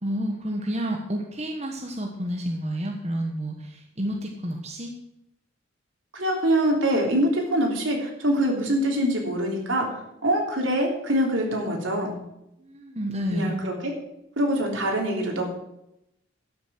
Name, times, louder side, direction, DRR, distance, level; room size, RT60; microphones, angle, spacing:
voice 1, 0.0-4.9 12.6-13.6, equal, 30° right, 1 dB, 1.3 m, -30 dB
voice 2, 6.1-9.9 10.2-12.1 13.3-13.9 14.4-15.4, right 1 dB, 75° right, 1 dB, 3.3 m, -24 dB
12.5 x 6.9 x 7.5 m, 0.84 s
head